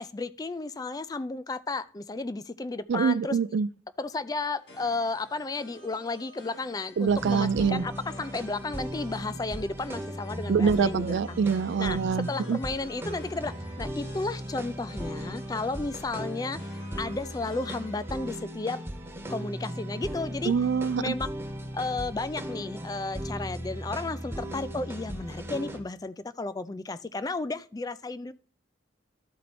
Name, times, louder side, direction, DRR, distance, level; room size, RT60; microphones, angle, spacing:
voice 1, 0.0-3.4 4.0-11.4 11.8-12.0 12.3-16.6 17.0-18.8 19.3-20.5 21.0-21.3 21.7-28.3, left 3 dB, 20° left, 0.3 m, -33 dB
voice 2, 2.9-3.7 7.0-7.8 10.5-12.6 20.5-21.1, right 6 dB, 75° right, 0.3 m, -25 dB
sound 1, 4.3-18.2, left 1 dB, 75° left, 2.2 m, -51 dB
sound 2, 7.1-25.8, equal, 15° right, 0.9 m, -37 dB
13.0 x 4.4 x 4.2 m
head